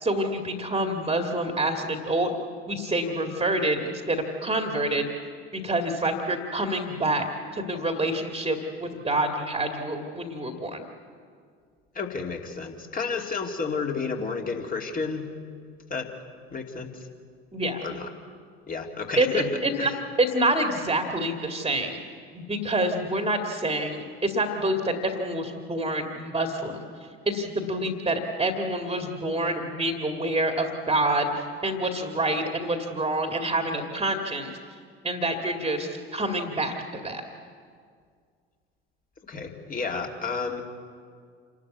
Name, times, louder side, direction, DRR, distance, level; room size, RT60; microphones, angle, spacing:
voice 1, 0.0-2.3 2.7-5.1 5.5-7.2 7.5-10.8 17.5-17.8 19.2-19.9 20.2-22.0 22.3-26.9 27.3-34.5 35.0-37.2, right 1 dB, 15° right, 4 dB, 2.1 m, -27 dB
voice 2, 11.9-15.3 15.9-16.1 16.5-16.9 17.8-18.1 18.7-20.0 39.2-40.6, left 4 dB, 25° left, 2 dB, 2.5 m, -31 dB
28.0 x 12.5 x 8.3 m, 2.1 s
figure-of-eight pair, 60°, 32 cm